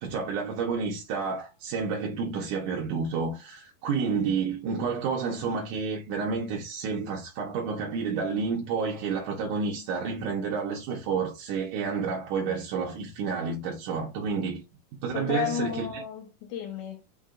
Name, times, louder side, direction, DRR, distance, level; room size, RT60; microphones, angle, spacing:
voice 1, 0.0-14.6 15.0-16.0, right 5 dB, 70° right, 2.1 m, -30 dB
voice 2, 15.1-17.1, left 10 dB, 75° left, 1.9 m, -33 dB
5.7 x 2.6 x 3.6 m
omnidirectional pair, 4.3 m